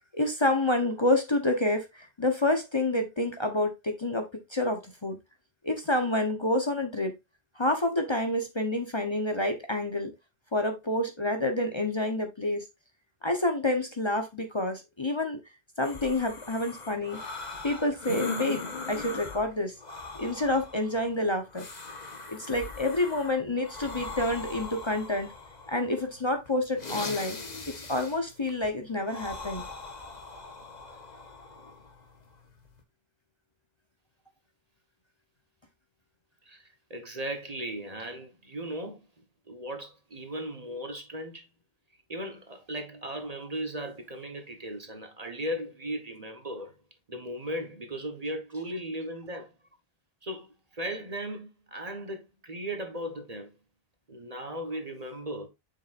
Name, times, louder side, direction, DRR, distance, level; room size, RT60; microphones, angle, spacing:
voice 1, 0.1-5.2 5.6-7.1 7.6-10.1 10.5-12.6 13.2-15.4 15.8-17.2 17.6-19.7 20.2-21.7 22.3-25.3 25.7-27.4 27.7-29.6, left 1 dB, 30° left, 1.0 m, -28 dB
sound 1, 15.8-32.8, left 3 dB, 45° left, 1.3 m, -40 dB
voice 2, 36.4-39.1 39.5-41.5 42.1-46.8 47.1-49.5 50.2-53.5 54.1-55.5, right 1 dB, 40° right, 1.3 m, -37 dB
7.3 x 5.9 x 2.5 m
omnidirectional pair, 1.0 m